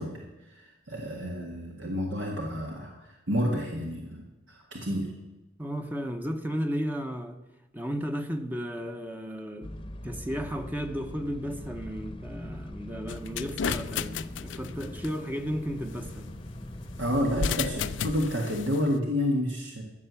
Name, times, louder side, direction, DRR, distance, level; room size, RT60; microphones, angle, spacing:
voice 1, 0.0-5.1 17.0-19.8, equal, 75° right, 0 dB, 1.8 m, -30 dB
voice 2, 5.6-7.4 7.7-9.7 10.0-16.3, equal, 10° right, 6 dB, 0.8 m, -34 dB
sound 1, 9.6-18.3, left 1 dB, 25° left, 0.9 m, -41 dB
sound 2, 13.1-15.1 17.3-18.8, left 7 dB, 70° left, 0.5 m, -33 dB
13.5 x 7.8 x 6.9 m, 1.0 s
head